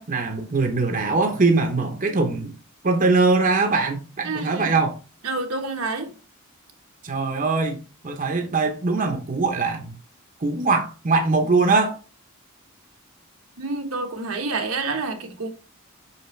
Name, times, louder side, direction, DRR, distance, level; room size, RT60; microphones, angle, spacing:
voice 1, 0.0-2.5 2.8-5.0 7.0-9.9 10.4-12.0, right 3 dB, 40° right, 0.8 m, -22 dB
voice 2, 4.2-4.8 5.2-6.1 13.6-15.5, right 3 dB, 85° right, 1.2 m, -28 dB
5.6 x 5.5 x 3.1 m
head